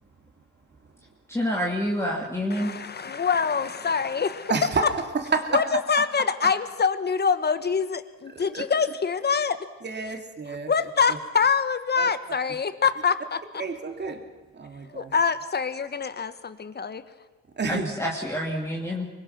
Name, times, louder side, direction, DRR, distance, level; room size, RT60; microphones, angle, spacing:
voice 1, 1.3-2.7 17.7-19.1, equal, 10° left, -1 dB, 2.5 m, -28 dB
voice 2, 2.5-4.5 5.5-9.6 10.7-13.6 14.9-17.0, left 5 dB, 35° left, 12 dB, 1.4 m, -25 dB
voice 3, 4.5-4.9 5.1-5.6 6.0-6.1 8.3-8.6 9.8-10.7 12.0-12.1 13.6-14.2 14.5-15.1 17.6-18.0, right 4 dB, 35° right, 5 dB, 2.8 m, -29 dB
24.5 x 21.0 x 6.1 m, 1.2 s
cardioid pair, 90°, 30 cm